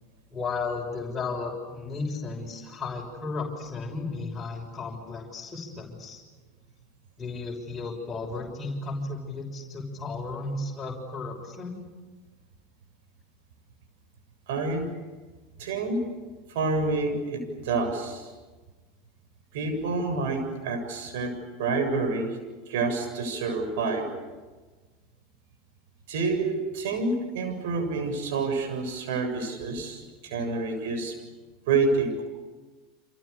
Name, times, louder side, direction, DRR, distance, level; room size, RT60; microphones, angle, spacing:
voice 1, 0.3-6.2 7.2-11.8, left 3 dB, 20° left, -3 dB, 6.5 m, -34 dB
voice 2, 14.5-14.9 15.6-16.0 16.5-18.3 19.5-22.4 22.7-24.1 26.1-31.2 31.7-32.2, right 3 dB, 65° right, 5 dB, 7.3 m, -28 dB
30.0 x 27.5 x 7.0 m, 1.3 s
hypercardioid pair, 80°, 0 cm